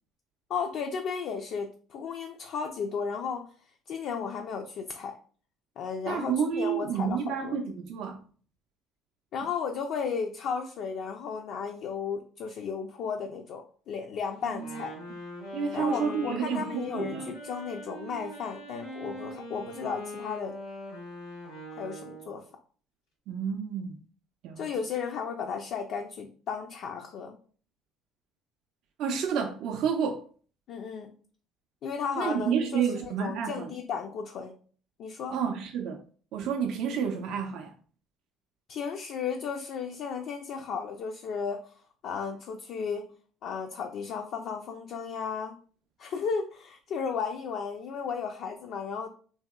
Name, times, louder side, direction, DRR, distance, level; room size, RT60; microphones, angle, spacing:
voice 1, 0.5-3.5 3.9-5.2 5.8-7.6 9.3-14.9 15.7-20.6 21.8-22.4 24.6-27.4 30.7-31.1 31.8-34.6 35.0-35.4 38.7-41.7 42.0-43.0 43.4-45.6 46.0-49.1, left 6 dB, 60° left, 0.3 m, -34 dB
voice 2, 6.1-8.2 14.4-14.6 15.5-17.3 23.3-24.0 24.4-24.7 29.0-30.2 32.2-33.7 35.3-36.0 36.3-37.7, right 7 dB, 65° right, 0.3 m, -30 dB
Wind instrument woodwind instrument, 14.5-22.5, equal, 90° left, 1.4 m, -41 dB
2.8 x 2.7 x 2.2 m
supercardioid pair, 70°, 0 cm